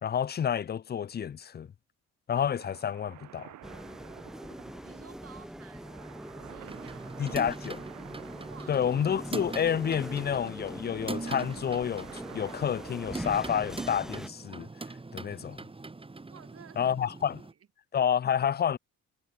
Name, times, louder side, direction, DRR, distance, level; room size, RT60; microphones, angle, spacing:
voice 1, 0.0-1.7 2.3-3.5 7.2-7.8 8.7-14.7 15.1-15.6 16.8-17.4 17.9-18.8, left 8 dB, 35° left, 0.6 m, -29 dB
sound 1, 2.3-13.2, right 13 dB, 75° right, 1.2 m, -50 dB
sound 2, 3.6-14.3, equal, ahead, 1.4 m, -42 dB
voice 2, 4.8-6.0 6.4-7.4 8.4-8.8 16.3-17.0 17.3-17.4, right 8 dB, 50° right, 2.5 m, -53 dB
sound 3, 6.6-17.5, right 3 dB, 20° right, 2.2 m, -42 dB
cardioid pair, 90°, 30 cm